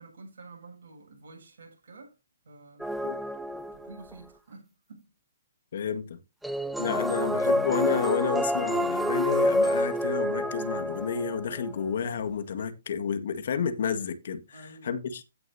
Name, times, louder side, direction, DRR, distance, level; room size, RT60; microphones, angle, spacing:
voice 1, 0.0-2.2 2.4-2.9 3.7-5.1 14.5-15.0, right 3 dB, 65° right, 7.1 m, -49 dB
sound 1, 2.8-4.1 6.4-11.7, equal, ahead, 0.8 m, -28 dB
voice 2, 5.7-6.2 6.8-14.6 14.8-15.2, left 7 dB, 65° left, 1.8 m, -30 dB
16.0 x 6.6 x 2.8 m
hypercardioid pair, 130°, 0 cm